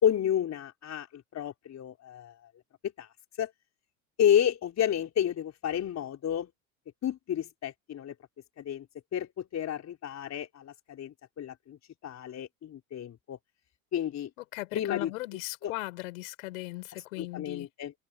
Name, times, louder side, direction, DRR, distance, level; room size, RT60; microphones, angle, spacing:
voice 1, 0.0-2.5 2.8-3.1 3.4-3.5 4.2-6.5 7.0-8.1 8.6-8.9 9.1-13.4 13.9-14.3 14.7-15.1 15.6-15.7 17.2-17.9, left 10 dB, 40° left, 4.2 m, -30 dB
voice 2, 14.5-17.7, left 20 dB, 75° left, 6.7 m, -38 dB
open air
hypercardioid pair, 85°, 42 cm